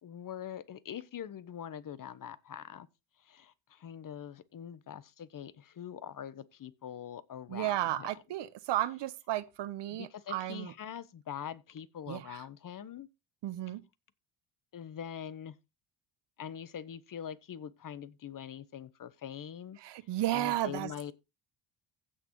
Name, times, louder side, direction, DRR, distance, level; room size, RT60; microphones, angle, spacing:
voice 1, 0.0-2.9 3.2-8.1 9.9-13.1 14.7-15.5 16.4-19.8 20.3-21.1, left 9 dB, 45° left, 1.1 m, -43 dB
voice 2, 7.5-10.7 12.1-12.2 13.4-13.8 19.8-20.9, right 14 dB, 60° right, 1.1 m, -33 dB
16.0 x 6.1 x 3.2 m
supercardioid pair, 70°, 46 cm